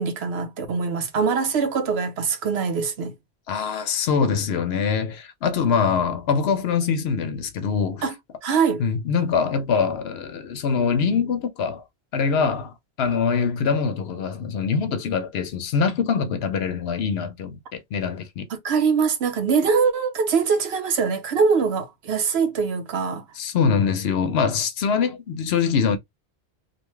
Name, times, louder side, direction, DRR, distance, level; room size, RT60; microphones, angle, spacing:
voice 1, 0.0-3.1 8.0-8.1 8.4-8.8 18.5-23.2, right 5 dB, 70° right, 0.9 m, -23 dB
voice 2, 3.5-8.0 8.8-11.8 12.1-18.5 23.4-26.0, left 6 dB, 70° left, 0.9 m, -23 dB
2.8 x 2.2 x 3.0 m
omnidirectional pair, 1.1 m